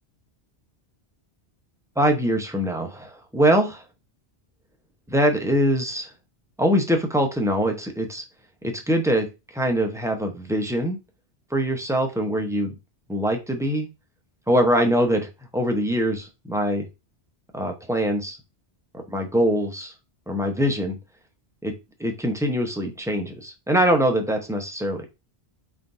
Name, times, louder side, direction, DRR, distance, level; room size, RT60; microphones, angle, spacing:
voice 1, 2.0-3.8 5.1-6.1 6.6-8.2 8.6-9.3 9.5-11.0 11.5-12.8 13.1-13.9 14.5-16.9 17.5-18.4 19.1-19.9 20.3-21.0 21.6-21.7 22.0-25.0, equal, 5° right, 3 dB, 0.7 m, -23 dB
4.3 x 3.8 x 2.6 m, 0.25 s
omnidirectional pair, 1.1 m